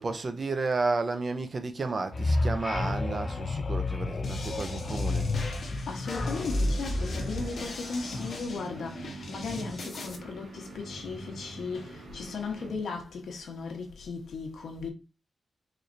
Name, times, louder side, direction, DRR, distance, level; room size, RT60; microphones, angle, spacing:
voice 1, 0.0-5.3, right 3 dB, 35° right, 0.5 m, -32 dB
sound 1, 2.1-8.3, left 2 dB, 35° left, 0.4 m, -30 dB
sound 2, 4.2-10.2, left 2 dB, 55° left, 0.8 m, -40 dB
sound 3, 5.4-13.1, right 2 dB, 85° right, 2.1 m, -46 dB
voice 2, 5.9-14.9, left 4 dB, 85° left, 1.0 m, -37 dB
4.1 x 3.1 x 2.6 m
wide cardioid pair, 150°, 0 cm